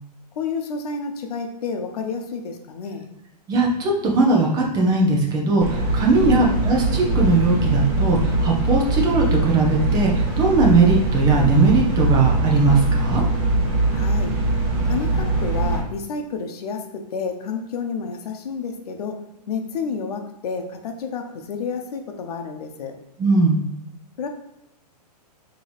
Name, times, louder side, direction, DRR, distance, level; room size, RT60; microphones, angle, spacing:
voice 1, 0.4-3.1 6.2-6.6 13.9-14.3 14.8-16.8 17.1-19.1 19.5-22.9 24.2-24.3, left 5 dB, 65° left, 4 dB, 0.9 m, -30 dB
voice 2, 3.5-13.2 23.2-23.6, right 3 dB, 20° right, -1 dB, 0.9 m, -19 dB
sound 1, 5.6-15.8, right 2 dB, 40° right, 1.3 m, -22 dB
5.0 x 3.1 x 3.4 m, 0.91 s
hypercardioid pair, 155°, 21 cm